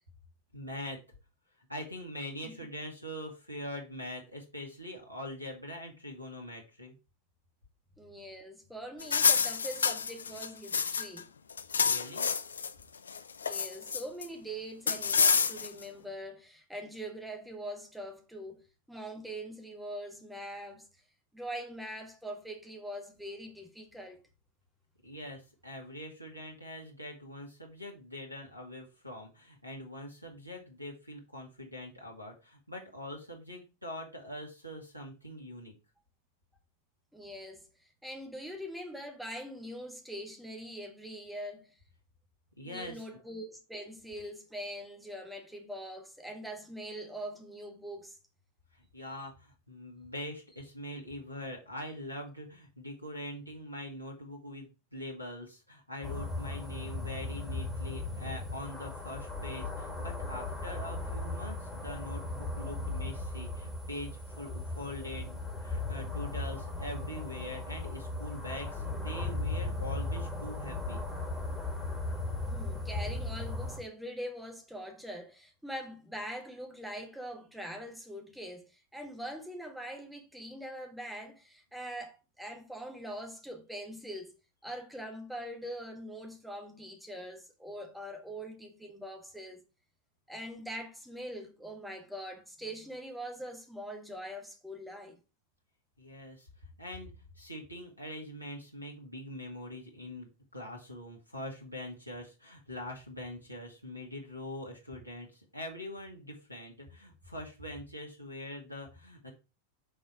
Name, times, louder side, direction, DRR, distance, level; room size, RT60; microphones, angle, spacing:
voice 1, 0.5-1.0 1.7-6.9 11.8-12.3 25.0-35.7 42.6-43.1 48.7-71.0 96.0-96.5 96.8-109.3, left 1 dB, 90° right, 1.7 m, -43 dB
voice 2, 8.0-11.3 13.4-20.9 21.3-24.2 37.1-37.7 38.0-41.7 42.6-48.2 72.5-84.3 84.6-89.6 90.3-95.1, equal, ahead, 1.4 m, -43 dB
sound 1, 9.0-11.2 11.5-12.7 13.1-14.3 14.9-15.8, left 6 dB, 70° left, 0.4 m, -28 dB
sound 2, 56.0-73.8, left 2 dB, 15° left, 2.1 m, -37 dB
6.1 x 4.0 x 4.7 m
figure-of-eight pair, 90°, 0 cm